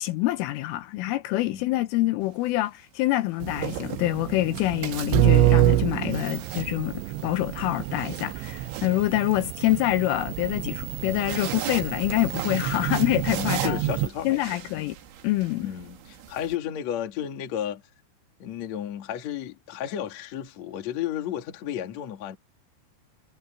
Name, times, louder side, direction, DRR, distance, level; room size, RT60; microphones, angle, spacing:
voice 1, 0.0-13.8 14.2-15.0 15.2-15.7, left 16 dB, 80° left, 3.4 m, -26 dB
sound 1, 2.2-2.5 3.4-4.6 6.0-7.2 7.7-9.8 10.9-16.6, right 10 dB, 65° right, 4.3 m, -38 dB
sound 2, 3.4-14.1, right 14 dB, 90° right, 2.7 m, -27 dB
voice 2, 13.2-14.5 14.7-14.9 15.6-17.8 18.4-22.4, left 10 dB, 50° left, 2.3 m, -33 dB
omnidirectional pair, 5.9 m